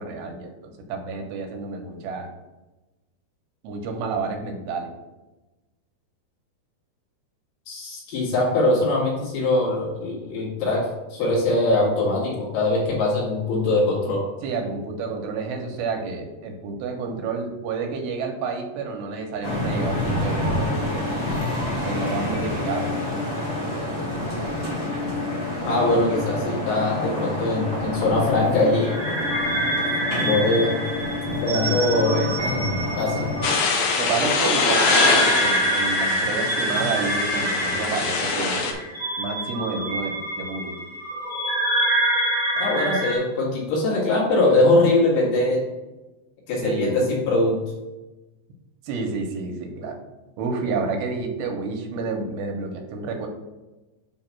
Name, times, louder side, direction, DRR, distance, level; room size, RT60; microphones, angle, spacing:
voice 1, 0.0-2.3 3.6-4.9 14.4-20.7 21.8-22.9 31.6-31.8 32.1-32.6 34.0-38.9 39.2-40.8 46.6-47.0 48.8-50.0 50.4-53.3, right 4 dB, 85° right, 3 dB, 3.0 m, -30 dB
voice 2, 7.7-14.2 25.6-29.1 30.2-30.7 31.4-33.3 36.7-36.8 42.6-45.6 46.5-47.6, left 2 dB, 70° left, -5 dB, 3.8 m, -22 dB
sound 1, 19.4-33.5, left 1 dB, 25° left, 0.7 m, -28 dB
sound 2, 28.7-43.2, right 1 dB, 45° right, 0.6 m, -26 dB
sound 3, 33.4-38.7, left 4 dB, 90° left, 1.7 m, -24 dB
7.7 x 2.9 x 5.8 m, 1.1 s
omnidirectional pair, 4.9 m